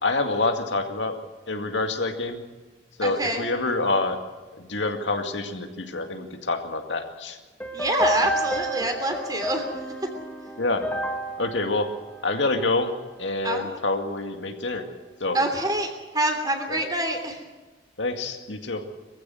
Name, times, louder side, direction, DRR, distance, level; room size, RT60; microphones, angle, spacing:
voice 1, 0.0-1.2 1.5-2.4 3.0-4.2 4.5-7.4 10.6-10.8 11.4-11.9 12.2-12.9 13.2-14.9 15.2-15.4 16.7-16.8 18.0-18.8, left 2 dB, 85° left, 5 dB, 2.2 m, -26 dB
voice 2, 3.0-3.4 7.7-9.7 10.0-10.1 13.4-13.7 15.3-17.4, right 1 dB, 20° right, 5 dB, 3.1 m, -26 dB
sound 1, 7.6-12.9, equal, 10° left, 1.7 m, -31 dB
22.5 x 15.0 x 7.8 m, 1.3 s
head